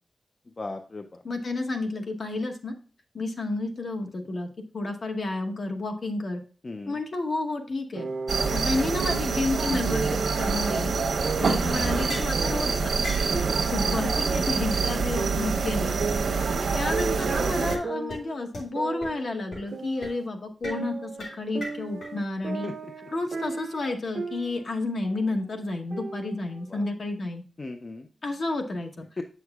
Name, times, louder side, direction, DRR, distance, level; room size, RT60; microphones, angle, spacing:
voice 1, 0.6-1.2 6.6-7.0 11.4-11.6 13.3-13.7 16.3-16.6 22.6-22.9 26.7-26.8 27.6-28.1 29.2-29.3, left 2 dB, 30° left, 5 dB, 0.4 m, -37 dB
voice 2, 1.2-2.7 3.1-4.5 4.7-6.4 6.9-8.1 8.5-10.9 11.4-12.9 13.5-16.0 16.5-21.1 21.4-22.7 23.1-27.4 28.2-29.1, left 2 dB, 50° left, 4 dB, 1.0 m, -31 dB
sound 1, 7.9-9.4 9.9-10.4 11.2-12.9 13.3-14.9 15.2-17.4 17.8-20.3 20.6-24.7 25.0-25.4 25.9-26.9, right 4 dB, 55° right, 0.6 m, -35 dB
sound 2, 8.3-17.8, right 5 dB, 80° right, 0.9 m, -26 dB
sound 3, 12.1-12.4 13.0-13.3 14.1-14.2 14.4-14.5 14.7-14.8 15.1-15.2 15.6-15.7 16.1-16.2 17.5-17.8 18.1-18.2 18.5-18.6 19.0-19.1 19.5-19.7 20.0-20.1 20.6-20.8 21.2-22.1, left 1 dB, 80° left, 3.2 m, -37 dB
7.8 x 6.3 x 2.3 m, 0.39 s
wide cardioid pair, 165°, 0 cm